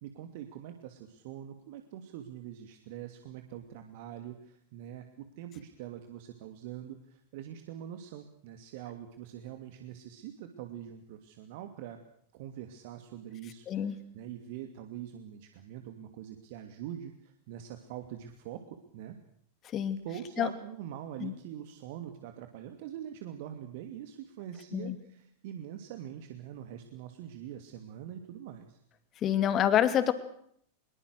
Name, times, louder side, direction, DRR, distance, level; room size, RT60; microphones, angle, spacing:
voice 1, 0.0-12.0 12.3-19.2 20.0-28.8, right 10 dB, 50° right, 6 dB, 2.6 m, -44 dB
voice 2, 29.2-30.1, left 10 dB, 30° left, 11 dB, 2.6 m, -27 dB
25.0 x 23.0 x 6.4 m, 0.67 s
figure-of-eight pair, 90°, 0 cm